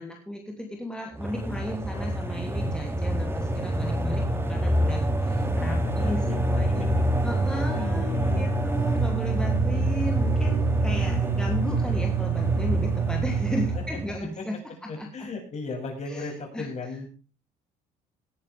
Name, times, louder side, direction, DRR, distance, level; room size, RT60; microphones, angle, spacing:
voice 1, 0.0-6.9 7.2-14.6 14.8-15.3 16.1-16.7, left 1 dB, 5° left, 0 dB, 3.0 m, -35 dB
sound 1, 1.1-14.2, equal, 15° right, 2.7 m, -26 dB
voice 2, 5.8-6.4 7.7-8.8 14.4-14.5 14.9-17.1, left 3 dB, 40° left, 2 dB, 7.0 m, -36 dB
sound 2, 8.8-13.8, right 15 dB, 55° right, 0.6 m, -29 dB
18.5 x 11.0 x 3.6 m, 0.35 s
cardioid pair, 110°, 17 cm